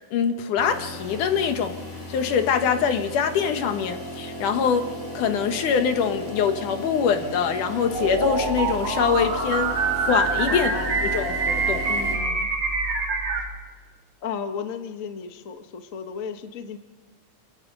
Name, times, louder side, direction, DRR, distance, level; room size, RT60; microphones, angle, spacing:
voice 1, 0.1-1.8 2.1-4.9 5.1-9.8 10.1-10.7 11.0-11.8, left 7 dB, 85° left, 7 dB, 3.0 m, -24 dB
sound 1, 0.6-12.1, equal, 65° left, 8.0 m, -35 dB
sound 2, 7.9-13.4, right 4 dB, 55° right, 3.7 m, -25 dB
voice 2, 10.5-11.0 11.9-12.5 13.4-13.5 14.2-16.8, left 6 dB, 50° left, 7 dB, 1.0 m, -34 dB
29.0 x 17.5 x 5.5 m, 1.3 s
omnidirectional pair, 3.5 m